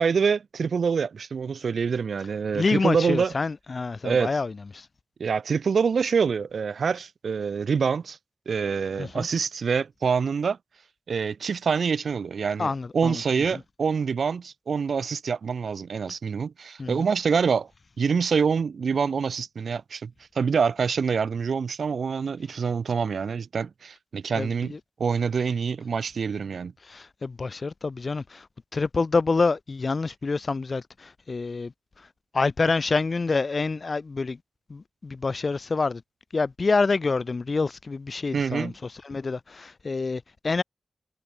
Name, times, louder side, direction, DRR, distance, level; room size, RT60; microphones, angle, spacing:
voice 1, 0.0-3.3 4.0-4.3 5.2-8.2 8.5-10.6 11.1-17.7 18.0-24.7 25.0-26.7 38.3-38.7, right 6 dB, 85° right, 0.4 m, -26 dB
voice 2, 2.5-4.9 9.0-9.3 12.6-13.2 16.8-17.1 24.4-24.8 26.8-28.5 28.7-31.7 32.0-32.1 32.3-34.4 34.7-36.0 36.3-40.6, left 4 dB, 50° left, 0.9 m, -27 dB
wide cardioid pair, 90°, 0 cm